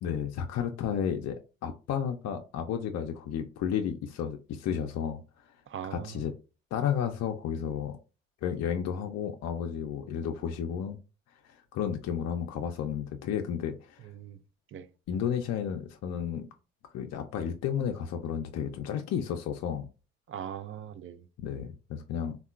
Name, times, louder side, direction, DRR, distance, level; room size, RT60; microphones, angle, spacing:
voice 1, 0.0-5.2 5.9-6.3 6.7-8.0 8.4-11.0 11.4-14.1 15.1-16.5 16.9-19.9 21.4-22.4, left 8 dB, 60° left, 0.5 m, -32 dB
voice 2, 5.7-6.3 14.0-14.4 14.7-14.9 20.3-21.3, right 9 dB, 40° right, 0.4 m, -40 dB
3.5 x 2.2 x 2.3 m
hypercardioid pair, 50°, 31 cm